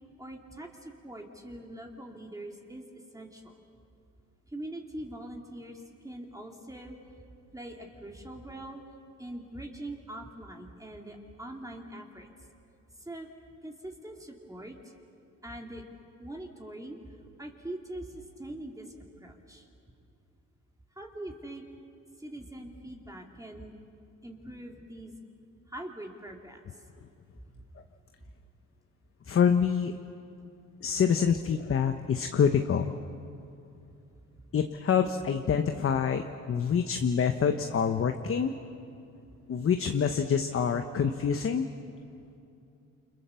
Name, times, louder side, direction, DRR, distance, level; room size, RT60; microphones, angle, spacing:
voice 1, 0.2-2.8 3.1-3.6 4.5-7.0 7.5-8.8 9.2-12.3 13.0-13.3 13.6-14.8 15.4-15.8 16.2-17.0 17.4-19.7 20.9-21.6 22.2-23.8 24.2-25.1 25.7-26.6 27.6-27.7 34.5-34.6, right 1 dB, 10° right, 1 dB, 2.7 m, -43 dB
voice 2, 29.3-29.9 30.8-32.9 34.5-38.5 39.5-41.7, left 7 dB, 45° left, 7 dB, 1.1 m, -26 dB
29.0 x 25.5 x 7.0 m, 2.7 s
cardioid pair, 90°, 30 cm